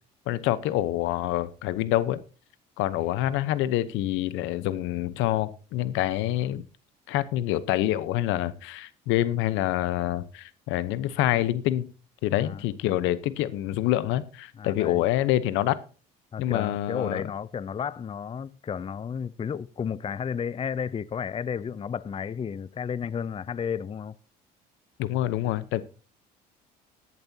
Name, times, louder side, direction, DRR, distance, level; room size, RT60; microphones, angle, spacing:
voice 1, 0.3-2.2 2.8-6.6 7.1-11.9 12.2-15.8 16.4-17.2 25.0-25.8, left 14 dB, 75° left, 0.9 m, -26 dB
voice 2, 14.6-15.0 16.3-24.1, left 7 dB, 30° left, 0.6 m, -32 dB
16.0 x 11.0 x 2.8 m
supercardioid pair, 75°, 20 cm